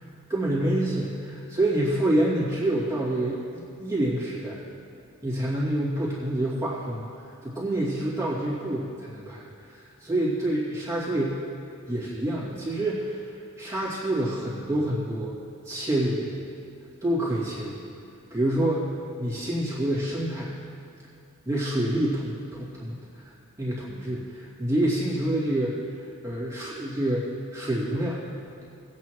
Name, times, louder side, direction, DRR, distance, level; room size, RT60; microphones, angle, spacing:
voice 1, 0.3-3.4 3.8-4.7 5.2-7.0 7.4-9.5 9.7-11.4 11.9-13.2 13.6-15.3 15.7-16.4 17.0-17.8 18.3-18.9 19.2-20.5 21.5-23.3 23.6-25.7 26.2-27.2 27.5-28.2, right 1 dB, 15° right, -8 dB, 2.4 m, -27 dB
19.0 x 8.6 x 3.1 m, 2.5 s
head